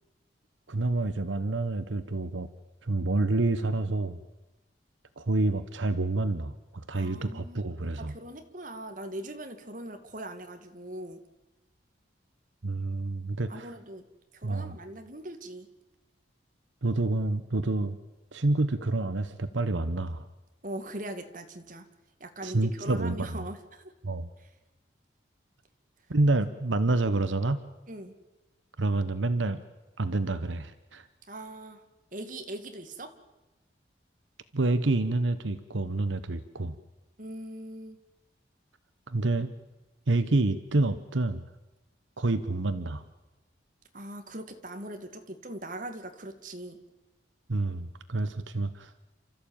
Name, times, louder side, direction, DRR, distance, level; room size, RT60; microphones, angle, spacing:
voice 1, 0.7-2.5 2.8-4.2 5.2-8.2 12.6-13.7 14.4-14.8 16.8-18.0 18.3-20.3 22.4-23.4 24.0-24.3 26.1-27.6 28.8-29.6 30.0-31.1 34.5-36.8 39.1-39.5 40.1-41.4 42.2-43.0 47.5-48.9, right 2 dB, 85° right, 12 dB, 1.1 m, -28 dB
voice 2, 6.9-7.6 8.0-11.2 13.5-14.0 14.3-15.7 20.6-21.9 22.2-23.9 24.4-24.5 27.9-28.1 31.3-31.8 32.1-33.1 37.2-38.0 43.9-46.8, right 1 dB, 45° right, 7 dB, 2.1 m, -41 dB
29.5 x 14.0 x 8.8 m, 1.1 s
head